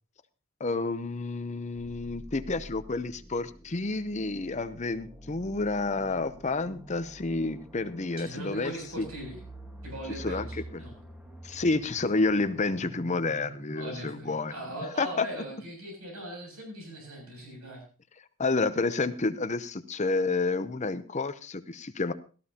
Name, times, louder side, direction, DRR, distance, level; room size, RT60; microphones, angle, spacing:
voice 1, 0.6-8.7 9.0-9.1 10.2-10.5 10.7-10.8 11.4-14.5 15.0-15.3 18.4-22.1, left 3 dB, 30° left, 12 dB, 0.7 m, -29 dB
sound 1, 1.8-15.5, right 1 dB, 5° right, 1.5 m, -47 dB
voice 2, 8.2-9.4 9.8-10.9 13.7-17.8, right 1 dB, 90° right, 1 dB, 7.4 m, -40 dB
17.5 x 13.5 x 2.9 m, 0.37 s
head